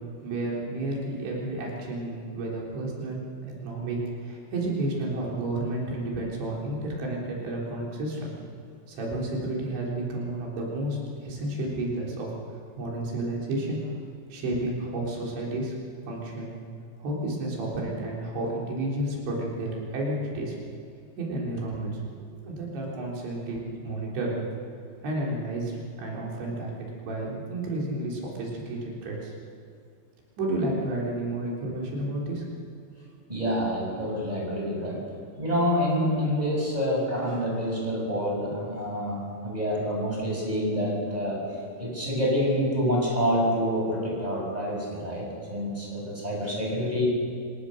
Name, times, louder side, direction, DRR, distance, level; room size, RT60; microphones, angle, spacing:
voice 1, 0.2-3.3 3.6-8.3 8.9-12.3 12.8-14.0 14.3-15.7 16.1-16.5 17.0-20.5 21.2-22.0 22.3-24.4 24.8-29.3 30.4-32.4, right 1 dB, 90° right, -3 dB, 6.3 m, -31 dB
voice 2, 33.3-35.0 35.4-41.4 41.8-47.1, equal, 10° right, -3 dB, 6.8 m, -27 dB
26.0 x 18.5 x 6.7 m, 2.3 s
omnidirectional pair, 5.0 m